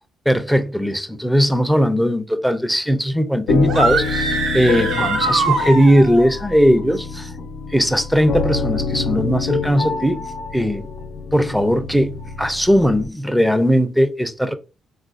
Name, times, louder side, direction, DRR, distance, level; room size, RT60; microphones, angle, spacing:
voice 1, 0.3-7.3 7.7-10.2 10.5-10.9 11.3-14.5, equal, ahead, 0.4 m, -18 dB
sound 1, 3.5-13.1, left 5 dB, 80° left, 0.6 m, -27 dB
sound 2, 3.7-6.3, right 4 dB, 85° right, 0.8 m, -22 dB
3.5 x 2.4 x 2.5 m
cardioid pair, 90°, 0 cm